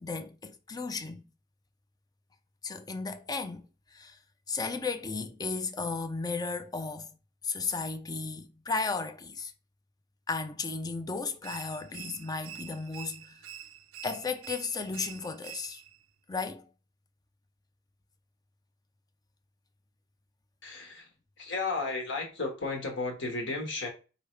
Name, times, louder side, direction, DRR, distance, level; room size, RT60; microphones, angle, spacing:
voice 1, 0.0-1.2 2.6-3.6 3.9-4.2 4.5-7.1 7.4-9.5 10.3-13.4 14.0-15.8 16.3-16.7, left 4 dB, 20° left, 0.4 m, -34 dB
sound 1, 11.4-16.0, right 11 dB, 80° right, 0.4 m, -47 dB
voice 2, 20.6-21.1 21.4-23.9, left 3 dB, 60° left, 1.4 m, -33 dB
5.1 x 2.8 x 3.2 m
head